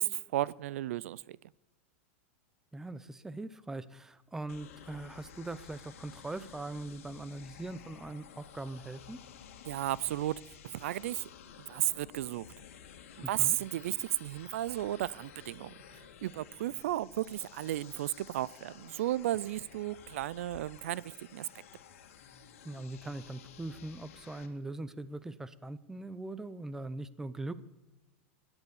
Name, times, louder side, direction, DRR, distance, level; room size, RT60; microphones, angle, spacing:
voice 1, 0.0-1.4 9.7-10.4 10.7-11.3 11.7-12.5 13.3-21.5, right 14 dB, 75° right, 0.4 m, -34 dB
voice 2, 2.7-9.2 13.2-13.6 22.6-27.6, right 2 dB, 5° right, 0.6 m, -41 dB
sound 1, 4.5-24.5, left 8 dB, 80° left, 2.0 m, -53 dB
15.0 x 11.0 x 7.1 m
supercardioid pair, 145°, 7 cm